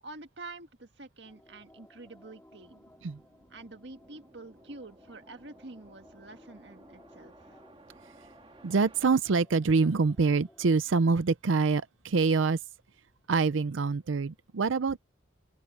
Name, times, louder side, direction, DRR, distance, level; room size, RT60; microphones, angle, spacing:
voice 1, 0.0-2.8 3.5-7.6, right 2 dB, 60° right, 1.8 m, -47 dB
sound 1, 1.2-10.8, left 1 dB, 10° left, 3.3 m, -60 dB
sound 2, 2.6-9.0, right 1 dB, 30° right, 2.0 m, -57 dB
voice 2, 8.6-12.6 13.3-15.0, right 4 dB, 80° right, 0.6 m, -25 dB
open air
head